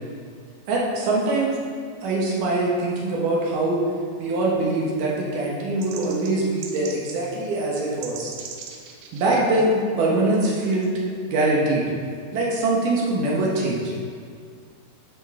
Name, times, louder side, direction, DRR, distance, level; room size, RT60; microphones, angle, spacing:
voice 1, 0.7-1.6 2.0-3.8 4.2-8.3 9.1-10.9 11.3-11.9 12.3-13.9, right 2 dB, 70° right, -4 dB, 2.2 m, -23 dB
sound 1, 5.8-7.2 7.5-7.6 7.8-9.6 10.3-10.9, right 6 dB, 90° right, 2.8 m, -40 dB
10.5 x 5.3 x 3.6 m, 2.2 s
omnidirectional pair, 4.7 m